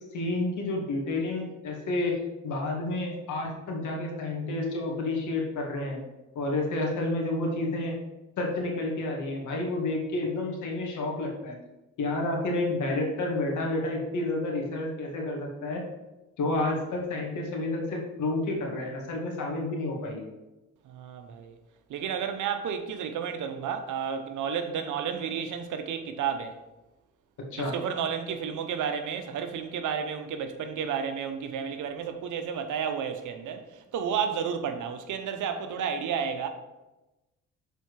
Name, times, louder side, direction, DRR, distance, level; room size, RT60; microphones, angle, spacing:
voice 1, 0.1-2.2 2.4-6.0 6.4-7.9 8.4-11.5 12.0-15.8 16.4-20.3 27.5-27.7, left 2 dB, 75° left, 2.0 m, -30 dB
voice 2, 20.8-21.6 21.9-26.6 27.6-36.5, right 7 dB, 80° right, 0.9 m, -32 dB
7.0 x 4.5 x 4.7 m
cardioid pair, 90°, 30 cm